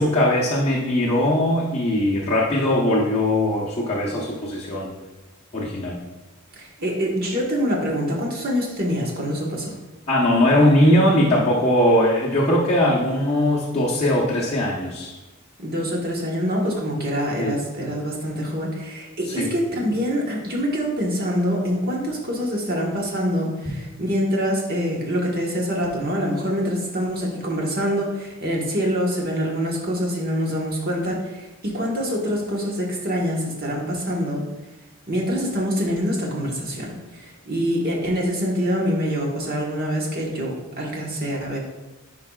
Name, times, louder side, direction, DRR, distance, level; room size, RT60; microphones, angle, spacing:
voice 1, 0.0-4.9 5.5-5.9 10.1-15.1 17.4-17.6 19.3-19.5, left 1 dB, 30° left, -7 dB, 0.9 m, -20 dB
voice 2, 6.6-9.7 15.6-34.5 35.1-41.6, equal, 45° right, -2 dB, 1.3 m, -25 dB
10.0 x 4.8 x 2.4 m, 1.1 s
head